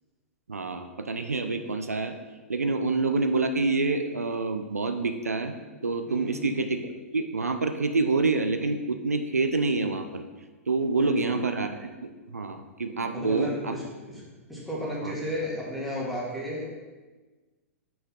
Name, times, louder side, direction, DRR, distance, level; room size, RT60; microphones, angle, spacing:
voice 1, 0.5-2.1 2.5-5.5 5.8-6.8 7.1-10.2 10.7-13.8 15.0-15.1, right 3 dB, 85° right, 7 dB, 0.4 m, -27 dB
voice 2, 6.1-6.4 11.0-11.4 13.1-14.2 14.5-16.7, equal, ahead, -7 dB, 1.9 m, -33 dB
5.9 x 5.1 x 3.6 m, 1.3 s
figure-of-eight pair, 110°, 8 cm